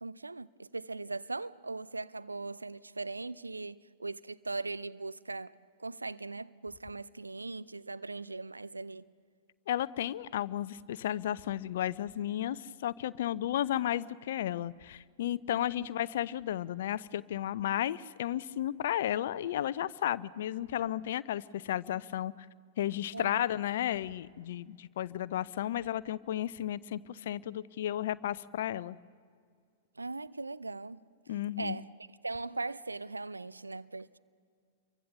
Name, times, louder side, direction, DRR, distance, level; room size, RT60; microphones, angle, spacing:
voice 1, 0.0-5.5 5.8-9.0 15.8-15.9 23.1-23.4 30.0-31.0 31.6-31.9 32.2-34.2, right 3 dB, 80° right, 0.6 m, -39 dB
voice 2, 9.7-22.5 22.8-29.0 31.3-31.8, left 12 dB, 55° left, 0.6 m, -33 dB
28.0 x 23.5 x 6.9 m
figure-of-eight pair, 100°, 0 cm